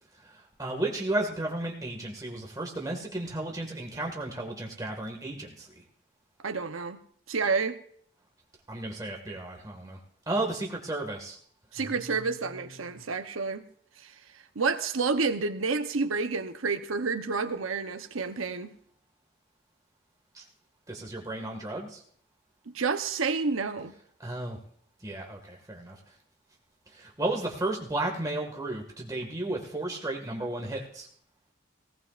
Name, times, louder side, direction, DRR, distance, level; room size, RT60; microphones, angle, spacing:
voice 1, 0.6-5.7 8.7-10.0 10.3-11.4 12.1-13.0 20.4-20.5 20.9-22.0 24.2-24.6 25.0-26.0 27.0-31.1, right 2 dB, 15° right, 1.9 m, -33 dB
voice 2, 6.4-7.0 7.3-7.8 11.7-13.6 14.6-18.7 22.7-23.9, right 4 dB, 85° right, 0.9 m, -29 dB
18.0 x 17.0 x 2.5 m
head